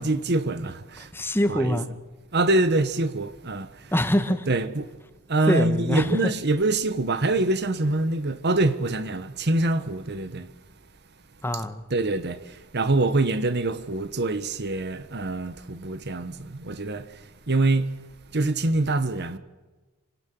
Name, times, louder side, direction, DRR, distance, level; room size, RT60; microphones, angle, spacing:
voice 1, 0.0-1.1 1.5-1.8 2.3-3.9 4.5-4.9 5.3-10.5 11.9-17.9 18.3-19.4, right 2 dB, 50° right, 1.3 m, -25 dB
voice 2, 1.1-1.9 3.9-4.5 5.5-6.2 11.4-11.8, equal, 10° left, 1.4 m, -24 dB
26.5 x 18.0 x 7.7 m
head